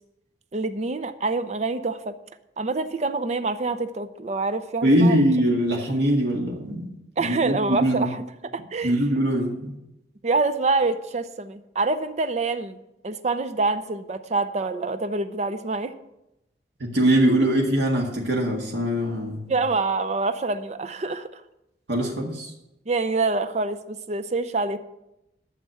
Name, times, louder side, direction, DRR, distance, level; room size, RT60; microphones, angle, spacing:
voice 1, 0.5-2.2 2.6-5.2 7.2-8.2 8.5-9.0 10.2-12.8 13.0-15.9 19.5-21.4 22.9-24.8, right 3 dB, 40° right, 10 dB, 0.5 m, -26 dB
voice 2, 4.8-6.9 7.2-8.1 8.8-9.7 16.8-19.5 21.9-22.5, right 1 dB, 80° right, -2 dB, 2.0 m, -22 dB
9.8 x 6.7 x 6.7 m, 0.90 s
head